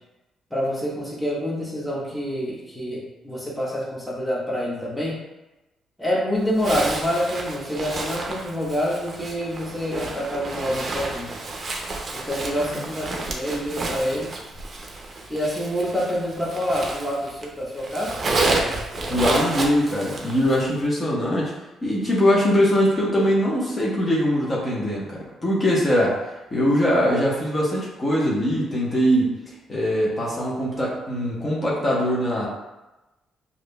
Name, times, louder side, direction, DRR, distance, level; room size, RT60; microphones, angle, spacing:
voice 1, 0.5-5.1 6.0-11.3 12.1-14.3 15.3-18.1, equal, ahead, -6 dB, 1.0 m, -27 dB
Zipper (clothing), 6.6-17.5 17.8-20.7, right 2 dB, 40° right, 0.5 m, -30 dB
voice 2, 19.1-21.5 21.8-26.2 26.5-29.3 29.7-32.5, equal, 30° left, -5 dB, 1.0 m, -22 dB
4.9 x 2.6 x 2.2 m, 1.0 s
cardioid pair, 90°, 0 cm